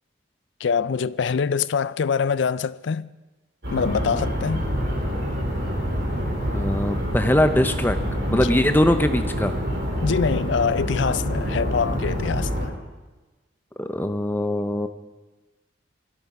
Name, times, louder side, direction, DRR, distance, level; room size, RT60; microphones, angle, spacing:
voice 1, 0.6-3.1 3.7-4.7 8.3-8.5 10.0-12.7, left 6 dB, 65° left, 0.4 m, -24 dB
sound 1, 3.6-12.7, equal, 55° right, 4.3 m, -26 dB
voice 2, 6.5-8.0 8.3-9.5 13.8-14.9, left 1 dB, 10° left, 0.7 m, -21 dB
19.0 x 13.0 x 5.5 m
head